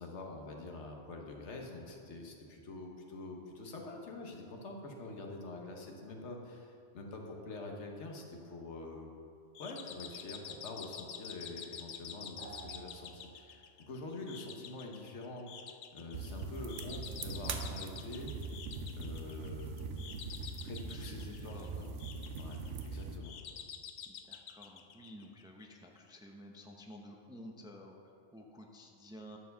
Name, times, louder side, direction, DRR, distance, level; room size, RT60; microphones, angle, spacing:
voice 1, 0.0-9.1 9.6-15.5 15.9-18.3 19.0-19.8 20.6-21.9 22.4-23.3, left 2 dB, 75° left, 1 dB, 1.4 m, -46 dB
sound 1, 9.5-25.6, left 7 dB, 60° left, 0.5 m, -49 dB
sound 2, 12.4-13.9, right 6 dB, 50° right, 0.5 m, -53 dB
sound 3, 16.1-23.2, right 4 dB, 85° right, 1.0 m, -42 dB
voice 2, 20.8-21.8 24.1-29.4, left 1 dB, 5° right, 1 dB, 0.6 m, -52 dB
10.5 x 4.6 x 6.4 m, 2.5 s
omnidirectional pair, 1.2 m